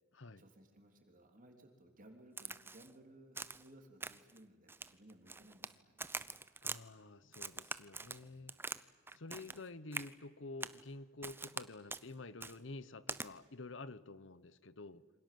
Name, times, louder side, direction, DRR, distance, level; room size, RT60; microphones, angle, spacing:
voice 1, 0.4-6.5 8.2-8.6, right 1 dB, 40° right, 4 dB, 3.5 m, -61 dB
Crack, 2.4-2.9 3.4-3.7 4.0-4.4 4.7-5.7 6.0-6.8 7.3-8.8 9.1-9.6 9.9-10.1 10.6-10.8 11.2-11.6 11.9-12.0 12.4-12.6 13.1-13.3, right 3 dB, 10° right, 0.8 m, -44 dB
voice 2, 6.6-8.5 9.1-15.0, left 2 dB, 65° left, 16 dB, 1.1 m, -49 dB
28.0 x 25.5 x 7.7 m, 1.4 s
head